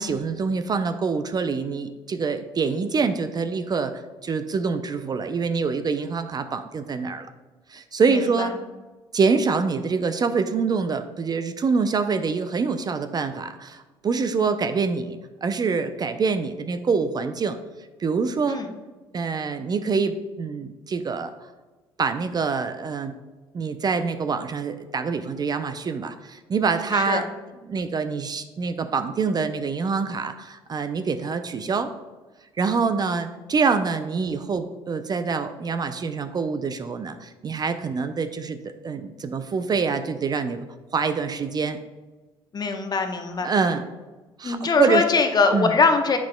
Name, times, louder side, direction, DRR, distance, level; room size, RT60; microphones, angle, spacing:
voice 1, 0.0-7.3 7.7-8.5 9.1-17.6 18.0-18.6 19.1-21.3 22.0-23.1 23.5-27.3 27.6-31.9 32.6-40.6 40.9-41.8 43.4-43.8 44.4-45.0 45.5-45.7, right 5 dB, 35° right, 9 dB, 0.5 m, -25 dB
voice 2, 8.1-8.5 18.5-18.7 26.9-27.2 42.5-43.5 44.4-46.2, left 4 dB, 35° left, 6 dB, 0.9 m, -22 dB
8.3 x 5.8 x 2.2 m, 1.2 s
hypercardioid pair, 60°, 12 cm